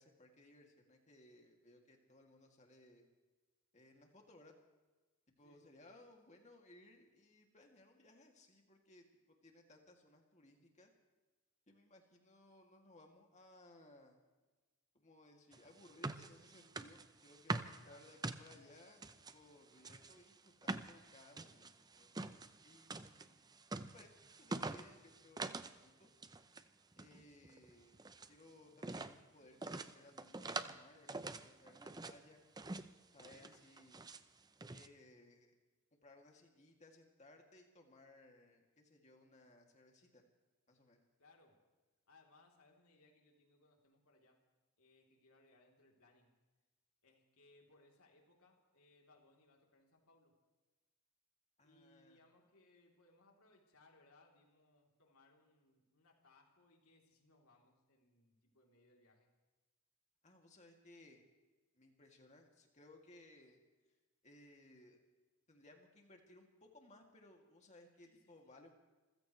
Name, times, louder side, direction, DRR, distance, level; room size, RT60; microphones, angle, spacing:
voice 1, 0.0-3.1 3.7-4.5 5.3-10.9 11.7-14.2 14.9-22.1 22.6-23.4 23.8-26.1 27.0-32.4 33.1-34.1 34.7-35.6 36.0-40.2 40.7-41.1 51.6-52.2 60.2-61.2 61.7-63.6 64.2-65.0 65.5-68.7, left 2 dB, 35° left, 2 dB, 2.6 m, -63 dB
sound 1, 15.5-19.3 19.8-25.8 26.0-26.6 26.9-28.3 28.8-29.2 29.6-30.8 31.1-32.2 32.6-32.9 33.2-34.2 34.6-34.9, right 3 dB, 20° right, 0.6 m, -45 dB
voice 2, 17.8-18.2 24.4-24.7 33.4-33.6 41.2-41.6 42.1-44.4 44.8-46.3 47.0-50.4 51.6-59.3 68.0-68.3, left 2 dB, 85° left, 0 dB, 3.4 m, -69 dB
27.5 x 16.0 x 3.3 m, 1.2 s
head